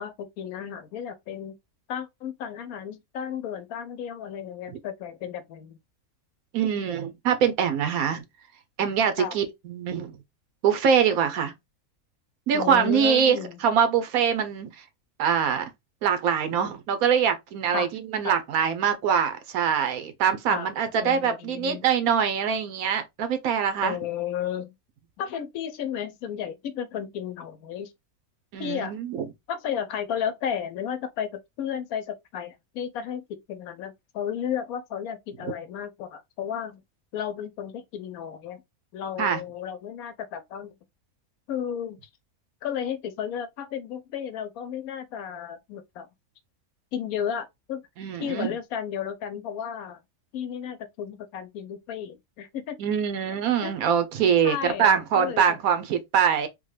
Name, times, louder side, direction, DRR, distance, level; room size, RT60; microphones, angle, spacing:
voice 1, 0.0-1.6 1.9-5.8 9.2-9.4 12.5-13.6 17.7-17.9 18.2-18.4 20.5-20.7 21.0-21.9 23.8-24.7 25.2-27.9 28.6-28.9 29.5-36.8 37.1-38.6 38.9-40.7 41.5-42.0 42.6-46.1 46.9-47.8 48.2-50.0 50.3-52.8 53.6-53.7 54.4-55.6, left 8 dB, 80° left, 1.1 m, -33 dB
voice 2, 6.5-8.2 8.8-10.1 10.6-11.5 12.5-13.4 13.6-14.7 15.2-15.7 16.0-24.0 28.5-29.3 39.2-39.4 48.0-48.5 52.8-56.5, right 7 dB, 80° right, 1.1 m, -23 dB
3.6 x 2.2 x 3.2 m
omnidirectional pair, 1.5 m